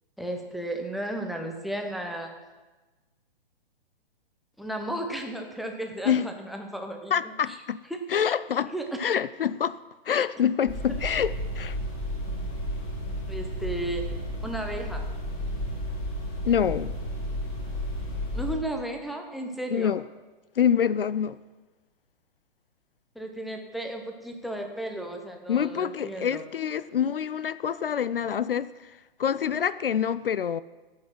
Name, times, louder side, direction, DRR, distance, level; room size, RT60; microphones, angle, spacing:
voice 1, 0.2-2.3 4.6-7.3 7.9-8.0 8.6-9.0 13.3-14.1 14.4-15.1 18.3-20.0 23.2-26.4, right 1 dB, ahead, 0.7 m, -34 dB
voice 2, 7.1-7.8 8.1-8.7 9.0-9.8 10.1-11.8 16.4-16.9 19.7-20.1 20.6-21.4 25.5-28.7 29.2-30.6, left 8 dB, 65° left, 0.5 m, -26 dB
sound 1, 10.7-18.5, equal, 25° left, 3.6 m, -32 dB
16.5 x 5.8 x 6.2 m
figure-of-eight pair, 120°, 30 cm